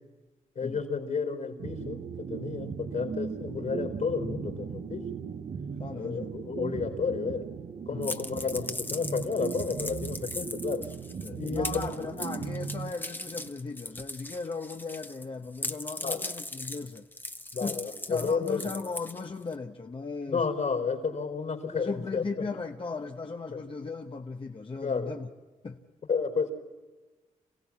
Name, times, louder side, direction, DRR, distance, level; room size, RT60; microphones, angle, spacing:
voice 1, 0.6-2.0 2.3-5.1 5.9-7.5 7.9-10.8 11.3-11.9 16.0-16.2 17.5-18.7 20.3-22.2 23.5-23.6 24.8-25.1 26.1-26.5, left 5 dB, 65° left, 3.9 m, -31 dB
sound 1, 1.6-13.5, right 6 dB, 60° right, 1.1 m, -38 dB
voice 2, 5.8-6.3 7.9-8.1 11.2-17.1 17.6-20.5 21.7-25.3 25.6-25.8, left 4 dB, 40° left, 1.0 m, -37 dB
sound 2, 8.0-15.3 15.6-19.5, left 1 dB, 15° left, 1.0 m, -39 dB
27.0 x 16.0 x 7.3 m
cardioid pair, 55°, 14 cm